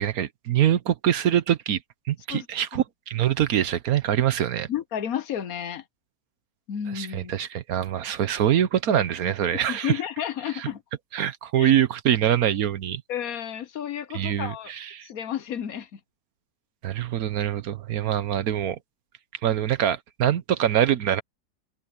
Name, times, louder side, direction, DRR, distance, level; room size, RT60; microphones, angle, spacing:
voice 1, 0.0-1.8 2.1-4.7 6.9-9.9 10.6-10.7 11.1-13.0 14.1-15.1 16.8-18.8 19.4-21.2, right 10 dB, 65° right, 1.3 m, -24 dB
voice 2, 4.7-5.8 6.7-7.3 9.7-10.8 11.6-11.7 13.1-14.7 15.0-16.0, left 9 dB, 65° left, 1.2 m, -31 dB
open air
omnidirectional pair, 1.7 m